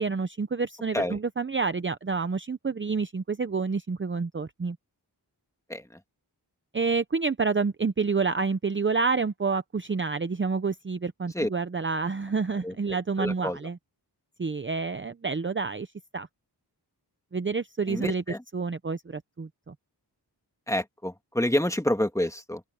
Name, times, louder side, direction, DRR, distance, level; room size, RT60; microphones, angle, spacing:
voice 1, 0.0-4.8 6.7-13.8 14.4-15.9 16.1-16.3 17.3-19.7, right 4 dB, 30° right, 0.7 m, -28 dB
voice 2, 13.2-13.6 17.9-18.4 20.7-22.6, left 1 dB, 5° left, 1.8 m, -28 dB
open air
wide cardioid pair, 100°, 42 cm